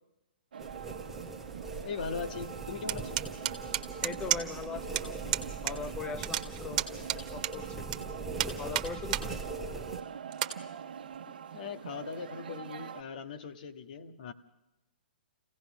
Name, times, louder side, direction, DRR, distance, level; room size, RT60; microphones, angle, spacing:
sound 1, 0.5-13.0, right 8 dB, 70° right, 1.0 m, -44 dB
sound 2, 0.6-10.0, right 3 dB, 5° right, 1.3 m, -41 dB
voice 1, 1.8-3.2 11.5-14.3, left 5 dB, 55° left, 8 dB, 1.6 m, -39 dB
sound 3, 2.9-4.7 5.0-5.1 5.3-5.8 6.0-8.0 8.4-9.3 9.7-9.8 10.3-10.5, right 13 dB, 45° right, 1.6 m, -31 dB
voice 2, 4.0-5.4 5.6-6.8 7.1-7.8 8.6-9.4, left 5 dB, 20° left, 13 dB, 0.8 m, -40 dB
24.5 x 16.5 x 6.3 m, 0.96 s
hypercardioid pair, 125°, 5 cm